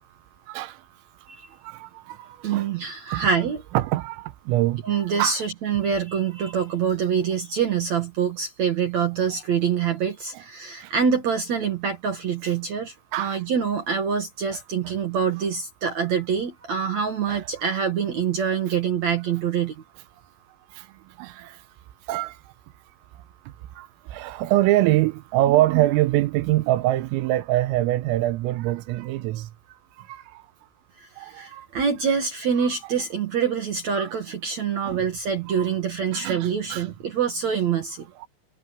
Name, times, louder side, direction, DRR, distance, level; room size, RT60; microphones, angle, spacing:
voice 1, 0.5-0.8 1.6-2.7 3.1-3.3 3.8-4.8 5.2-5.4 10.8-10.9 13.1-13.4 17.3-17.4 20.7-20.9 21.2-21.6 22.1-22.4 23.8-29.5 30.0-30.4 31.2-31.7 34.0-34.1 34.8-35.1 35.6-35.7 36.1-36.9 38.2-38.3, right 15 dB, 85° right, 3.7 m, -24 dB
voice 2, 2.4-3.6 4.8-19.7 31.2-38.0, right 7 dB, 65° right, 1.8 m, -25 dB
omnidirectional pair, 5.8 m